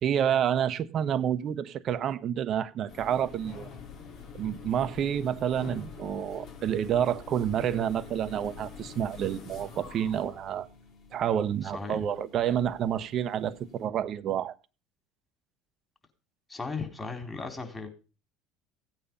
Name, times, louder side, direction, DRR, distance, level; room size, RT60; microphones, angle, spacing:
voice 1, 0.0-3.7 4.3-10.7 11.1-14.6, right 9 dB, 50° right, 1.1 m, -29 dB
sound 1, 2.9-13.9, left 6 dB, 60° left, 3.3 m, -46 dB
voice 2, 11.6-12.1 16.5-17.9, left 4 dB, 20° left, 4.2 m, -36 dB
16.5 x 9.0 x 5.5 m
hypercardioid pair, 75°, 0 cm